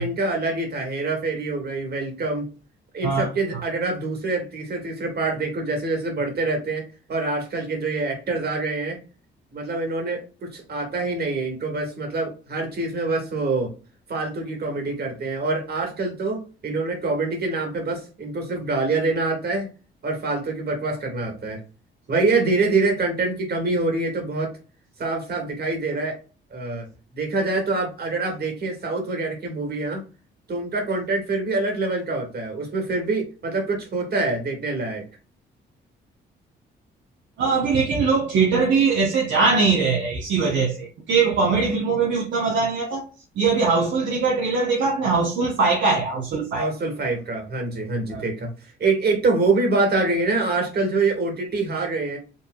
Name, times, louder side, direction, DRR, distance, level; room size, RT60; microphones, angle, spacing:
voice 1, 0.0-2.5 2.9-6.8 7.1-9.0 9.5-13.7 14.1-19.7 20.0-21.6 22.1-24.5 25.0-26.2 26.5-26.9 27.1-30.0 30.5-35.0 46.6-48.5 48.8-52.2, right 3 dB, 55° right, 2.0 m, -25 dB
voice 2, 37.4-43.1 43.4-46.7 48.1-48.2, right 4 dB, 70° right, 1.0 m, -21 dB
5.3 x 3.3 x 2.3 m
cardioid pair, 90°, 20 cm